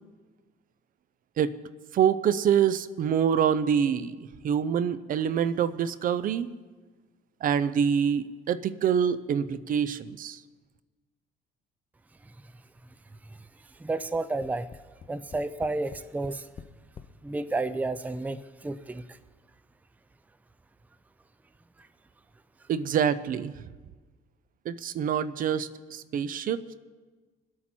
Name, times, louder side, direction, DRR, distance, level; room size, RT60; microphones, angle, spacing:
voice 1, 1.9-6.5 7.4-10.4 22.7-23.5 24.7-26.7, right 8 dB, 55° right, 14 dB, 0.7 m, -26 dB
voice 2, 13.8-14.7 15.1-16.5 17.2-19.0, right 2 dB, 10° right, 13 dB, 0.5 m, -31 dB
Tap, 14.1-17.2 18.0-18.1 18.4-18.5, left 6 dB, 35° left, 0.7 m, -47 dB
23.5 x 8.5 x 4.5 m, 1.3 s
cardioid pair, 110°, 17 cm